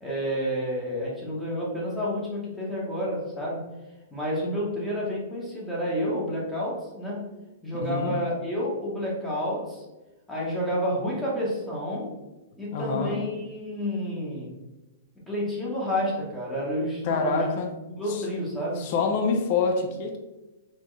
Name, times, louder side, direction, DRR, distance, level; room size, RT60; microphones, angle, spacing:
voice 1, 0.0-3.7 4.1-7.3 7.6-9.8 10.3-12.1 12.6-14.5 15.3-17.6 18.0-18.9, equal, 5° left, -5 dB, 0.9 m, -30 dB
voice 2, 7.8-8.2 12.7-13.2 17.0-17.7 18.1-18.2 18.8-20.2, left 4 dB, 35° left, 4 dB, 0.6 m, -26 dB
4.3 x 3.5 x 3.1 m, 1.1 s
hypercardioid pair, 170°, 0 cm